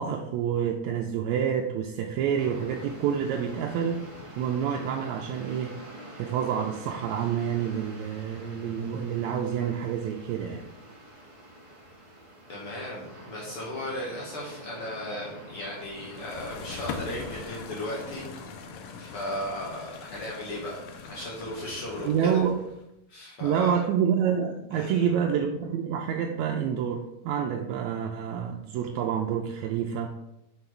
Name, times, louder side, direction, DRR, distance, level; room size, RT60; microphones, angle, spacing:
voice 1, 0.0-4.0 4.4-5.8 6.1-10.7 22.1-22.6 23.4-30.2, right 8 dB, 80° right, 3 dB, 1.9 m, -28 dB
sound 1, 2.4-17.6, equal, 15° right, 1.2 m, -46 dB
voice 2, 12.5-18.6 18.9-22.3 23.1-23.8 24.7-25.1, left 1 dB, 55° left, -4 dB, 2.0 m, -36 dB
sound 2, 15.8-22.8, left 5 dB, 75° left, 1.3 m, -41 dB
6.1 x 5.6 x 4.4 m, 0.88 s
omnidirectional pair, 3.4 m